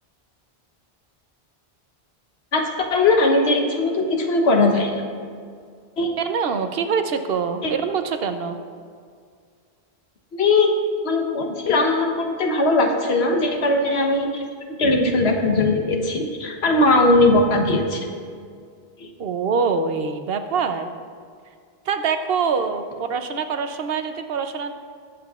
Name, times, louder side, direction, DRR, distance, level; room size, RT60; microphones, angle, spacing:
voice 1, 2.5-4.9 6.0-6.1 7.6-7.7 10.3-10.8 11.0-14.4 14.7-18.1 19.0-19.1, left 2 dB, 85° left, 3 dB, 1.3 m, -19 dB
voice 2, 6.2-8.6 19.2-20.9 21.9-24.7, right 5 dB, 70° right, 7 dB, 0.9 m, -24 dB
20.5 x 7.7 x 2.4 m, 2.1 s
omnidirectional pair, 1.0 m